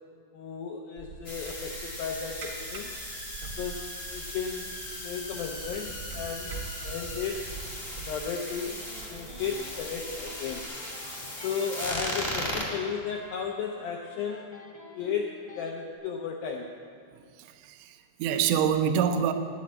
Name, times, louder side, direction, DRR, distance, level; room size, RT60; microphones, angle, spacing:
voice 1, 0.3-2.9 3.6-3.9 4.1-6.6 6.8-7.5 8.0-8.8 9.1-10.7 11.4-14.6 14.8-16.7, left 6 dB, 85° left, 1 dB, 2.1 m, -34 dB
sound 1, 1.0-10.6, right 4 dB, 60° right, 1.6 m, -44 dB
sound 2, 1.2-12.6, left 1 dB, 35° left, 0.9 m, -38 dB
Electric guitar, 8.6-15.8, left 2 dB, 55° left, 1.4 m, -50 dB
voice 2, 17.6-19.3, right 8 dB, 85° right, 6 dB, 3.0 m, -26 dB
10.5 x 9.3 x 8.6 m, 2.1 s
omnidirectional pair, 5.2 m